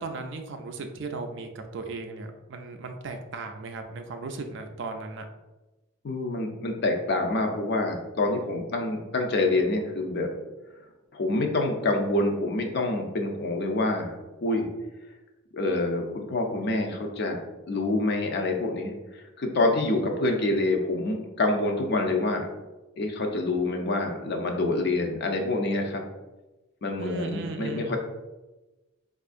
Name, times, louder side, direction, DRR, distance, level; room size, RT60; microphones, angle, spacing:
voice 1, 0.0-5.3 27.0-28.0, right 3 dB, 55° right, 5 dB, 0.4 m, -36 dB
voice 2, 6.0-10.3 11.1-14.7 15.5-17.4 17.7-22.5 23.0-26.0 26.8-28.0, left 2 dB, 50° left, 3 dB, 0.5 m, -27 dB
4.5 x 2.4 x 2.4 m, 1.1 s
head